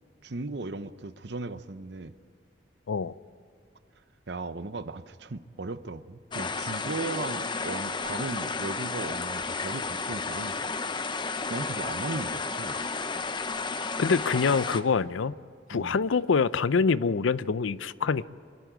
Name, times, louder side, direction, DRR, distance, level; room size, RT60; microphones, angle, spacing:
voice 1, 0.2-2.1 4.3-10.6 11.5-12.8 15.7-16.0, right 3 dB, 60° right, 0.8 m, -37 dB
sound 1, 6.3-14.8, left 4 dB, 25° left, 0.7 m, -32 dB
voice 2, 14.0-15.3 15.7-18.2, left 5 dB, 85° left, 0.5 m, -25 dB
26.5 x 12.5 x 9.2 m
head